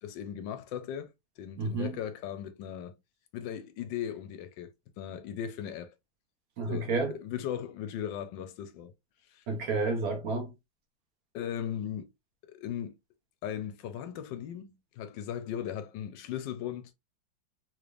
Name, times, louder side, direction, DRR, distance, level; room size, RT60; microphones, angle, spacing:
voice 1, 0.0-3.0 3.3-4.7 5.0-5.9 6.7-8.9 9.2-9.4 11.3-12.1 12.4-13.0 13.4-16.9, left 9 dB, 80° left, 1.2 m, -38 dB
voice 2, 1.6-2.0 6.6-7.1 9.5-10.5, right 3 dB, 60° right, 1.2 m, -30 dB
3.6 x 3.3 x 2.4 m
omnidirectional pair, 2.0 m